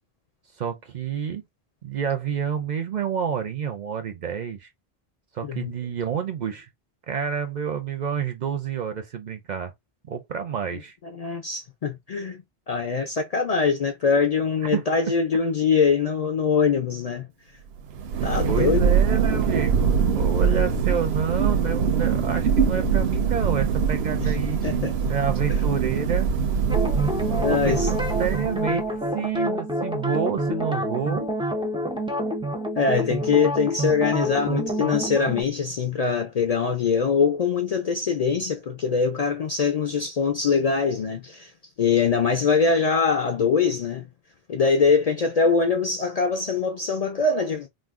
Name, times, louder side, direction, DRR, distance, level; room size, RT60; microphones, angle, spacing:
voice 1, 0.6-1.4 1.8-4.7 5.3-6.7 7.1-9.7 10.1-10.9 14.7-14.8 18.2-24.6 25.1-26.3 27.3-31.3 33.1-33.4, right 7 dB, 55° right, 0.5 m, -29 dB
voice 2, 5.4-5.7 11.1-17.3 18.2-18.8 20.5-20.7 24.2-24.3 24.6-25.1 27.4-27.9 32.8-41.5 41.8-44.1 44.5-47.7, left 5 dB, 55° left, 0.4 m, -23 dB
Thunder, 17.8-28.8, right 6 dB, 80° right, 0.8 m, -23 dB
sound 1, 26.7-35.4, equal, 10° right, 0.3 m, -27 dB
2.5 x 2.1 x 3.5 m
omnidirectional pair, 1.0 m